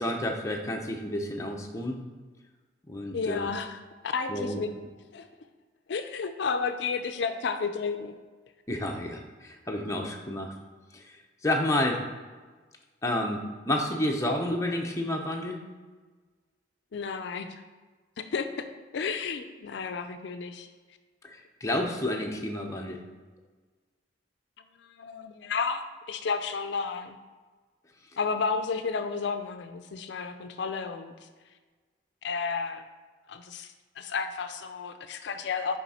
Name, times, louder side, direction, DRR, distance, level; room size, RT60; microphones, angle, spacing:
voice 1, 0.0-2.0 2.9-3.5 4.3-4.6 8.7-10.5 10.9-11.0 11.4-12.0 13.0-15.6 21.2-23.0, left 1 dB, 15° left, 0 dB, 0.6 m, -30 dB
voice 2, 3.1-4.7 5.1-5.3 5.9-8.1 16.9-17.6 18.2-18.7 18.9-20.7 24.6-27.2 28.2-31.3 32.2-32.9 33.3-35.8, left 5 dB, 65° left, 8 dB, 0.4 m, -32 dB
5.8 x 4.8 x 4.2 m, 1.4 s
head